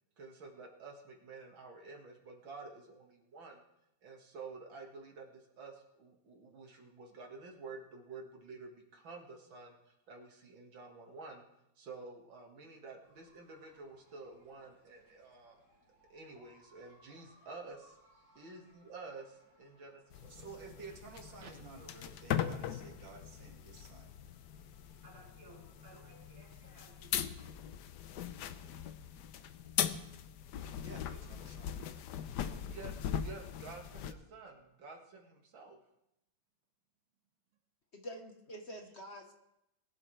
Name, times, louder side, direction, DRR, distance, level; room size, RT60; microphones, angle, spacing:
voice 1, 0.2-3.6 4.0-11.4 11.8-15.6 16.1-18.0 18.4-20.5 21.4-21.5 32.7-35.8, right 3 dB, 90° right, 1 dB, 2.6 m, -50 dB
sound 1, 13.0-27.1, right 1 dB, 55° right, 3.4 m, -65 dB
sound 2, 20.1-34.1, left 9 dB, 70° left, 1.2 m, -40 dB
voice 2, 20.3-24.2 30.8-31.9, right 4 dB, 75° right, 1 dB, 2.7 m, -52 dB
voice 3, 37.9-39.3, equal, 40° left, 3 dB, 1.3 m, -47 dB
21.0 x 11.5 x 3.3 m, 0.84 s
omnidirectional pair, 2.0 m